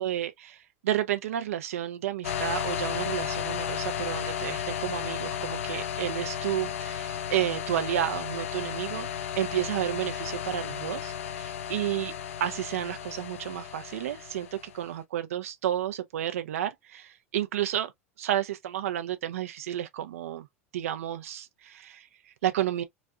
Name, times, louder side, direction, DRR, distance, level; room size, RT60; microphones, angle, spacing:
voice 1, 0.0-9.1 9.4-12.1 12.4-17.9 18.2-20.5 20.7-22.8, right 11 dB, 80° right, 0.5 m, -31 dB
sound 1, 2.2-14.8, left 9 dB, 80° left, 0.5 m, -34 dB
4.1 x 2.3 x 2.2 m
hypercardioid pair, 90°, 7 cm